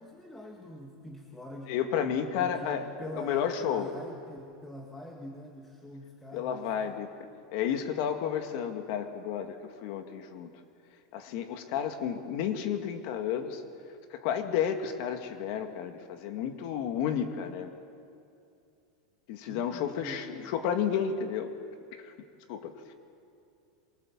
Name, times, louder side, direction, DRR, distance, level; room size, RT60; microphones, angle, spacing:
voice 1, 0.0-1.8 2.4-6.9 19.5-20.5, left 1 dB, 10° left, 0 dB, 1.9 m, -44 dB
voice 2, 1.7-2.9 3.1-3.9 6.3-7.1 7.5-9.6 9.8-10.5 11.1-13.6 14.1-17.7 19.3-21.5 22.0-22.1 22.5-22.9, left 8 dB, 55° left, 6 dB, 2.0 m, -31 dB
23.5 x 23.0 x 7.5 m, 2.6 s
supercardioid pair, 155°, 3 cm